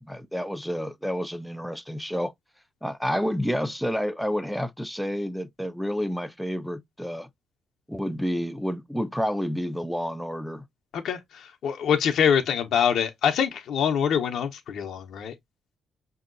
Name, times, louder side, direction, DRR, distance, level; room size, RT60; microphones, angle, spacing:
voice 1, 0.0-2.3 2.8-7.3 7.9-10.6, equal, ahead, 0.4 m, -29 dB
voice 2, 10.9-15.3, left 8 dB, 75° left, 0.6 m, -25 dB
5.2 x 2.7 x 2.5 m
cardioid pair, 90°, 0 cm